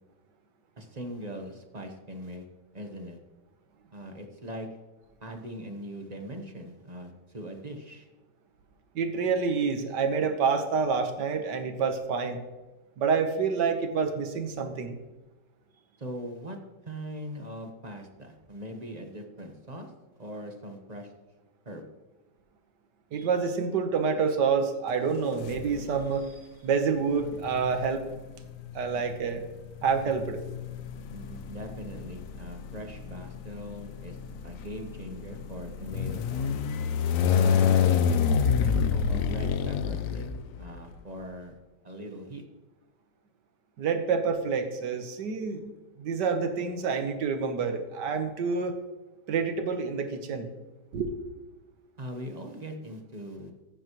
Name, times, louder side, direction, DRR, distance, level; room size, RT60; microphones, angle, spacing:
voice 1, 0.8-2.4 2.7-3.2 3.9-4.7 5.2-8.1 16.0-16.6 16.8-19.9 20.2-21.1 21.6-21.8 31.1-34.2 34.4-36.5 37.3-40.3 40.6-41.5 41.8-42.4 52.0-53.5, equal, 30° right, 4 dB, 1.0 m, -40 dB
voice 2, 9.0-12.4 13.0-15.0 23.1-26.3 26.6-28.1 28.8-29.5 29.8-30.4 43.8-45.6 46.0-48.7 49.3-50.5 50.9-51.2, right 5 dB, 80° right, 7 dB, 1.7 m, -28 dB
sound 1, 25.4-26.1 27.2-40.9, left 7 dB, 65° left, 0.9 m, -28 dB
15.0 x 9.0 x 3.1 m, 1.2 s
omnidirectional pair, 1.8 m